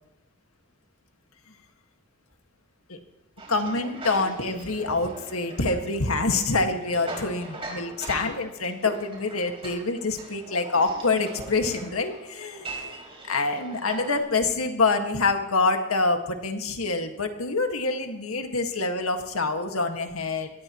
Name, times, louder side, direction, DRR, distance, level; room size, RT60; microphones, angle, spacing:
sound 1, 3.4-14.2, right 2 dB, 25° right, 4.3 m, -41 dB
voice 1, 3.5-13.0 13.3-20.5, left 3 dB, 85° left, 5 dB, 1.8 m, -26 dB
24.0 x 18.0 x 3.1 m, 0.92 s
head